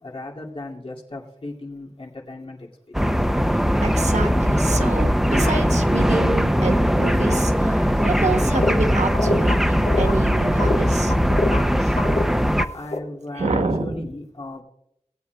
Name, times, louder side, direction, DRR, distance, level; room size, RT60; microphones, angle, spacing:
voice 1, 0.0-2.7 12.7-14.6, left 2 dB, 55° left, -2 dB, 2.4 m, -36 dB
sound 1, 2.9-12.7, equal, 5° right, 0.5 m, -20 dB
sound 2, 3.0-3.1 3.5-4.8 5.4-5.8 6.0-6.1 7.3-7.4 7.9-8.2 8.5-8.8 9.1-10.2 10.6-11.7 12.0-13.0, left 2 dB, 75° left, 1.2 m, -26 dB
voice 2, 3.8-11.1 11.8-11.9 13.3-14.0, right 3 dB, 90° right, 5 dB, 1.2 m, -27 dB
18.0 x 8.4 x 2.3 m, 0.75 s
wide cardioid pair, 85°, 11 cm